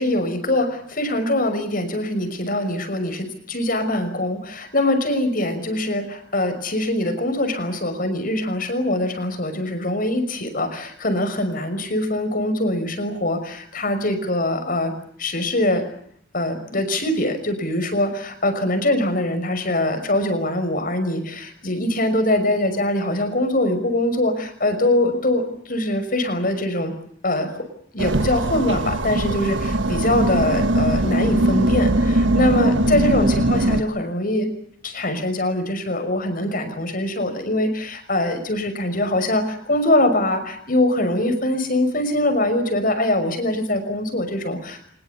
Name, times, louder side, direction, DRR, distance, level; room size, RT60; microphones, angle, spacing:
voice 1, 0.0-14.9 15.2-15.8 16.3-26.9 27.2-27.7 27.9-34.5 34.8-44.9, left 1 dB, 45° left, 8 dB, 6.0 m, -23 dB
sound 1, 28.0-33.8, right 1 dB, 75° right, 1.5 m, -20 dB
24.5 x 21.5 x 8.3 m, 0.64 s
head